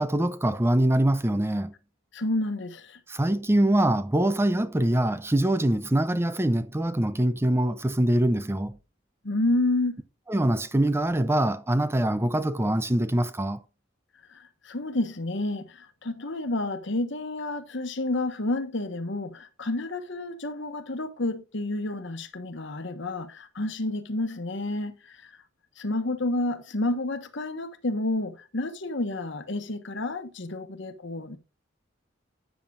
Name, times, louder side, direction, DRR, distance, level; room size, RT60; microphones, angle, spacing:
voice 1, 0.0-1.7 3.1-8.8 10.3-13.6, right 1 dB, 15° right, 0.5 m, -24 dB
voice 2, 2.1-3.0 9.2-10.0 14.3-25.4 25.8-31.4, left 2 dB, 70° left, 1.3 m, -30 dB
12.5 x 9.1 x 2.5 m
head